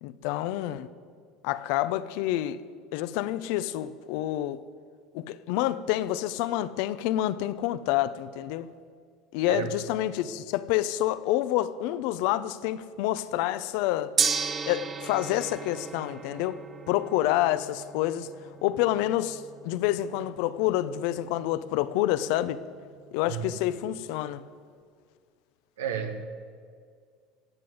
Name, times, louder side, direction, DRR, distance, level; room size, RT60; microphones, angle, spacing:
voice 1, 0.0-0.9 1.4-2.6 2.9-4.6 5.1-8.7 9.3-14.1 14.7-18.3 18.6-22.6 23.1-24.4, left 14 dB, 70° left, 0.6 m, -28 dB
Gong, 14.2-24.4, right 6 dB, 35° right, 0.9 m, -36 dB
voice 2, 25.8-26.3, right 8 dB, 90° right, 1.3 m, -31 dB
18.0 x 7.6 x 7.9 m
hypercardioid pair, 90°, 0 cm